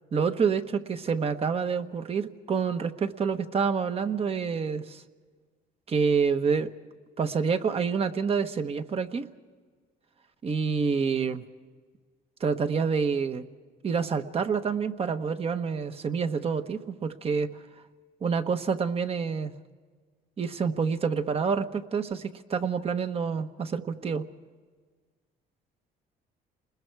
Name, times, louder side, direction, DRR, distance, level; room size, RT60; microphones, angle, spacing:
voice 1, 0.1-5.0 5.9-6.7 7.2-9.3 10.4-11.4 12.4-13.4 13.8-17.5 18.2-19.5 20.4-24.2, right 5 dB, 35° right, 9 dB, 1.2 m, -27 dB
29.5 x 21.0 x 4.7 m, 1.5 s
cardioid pair, 110°, 17 cm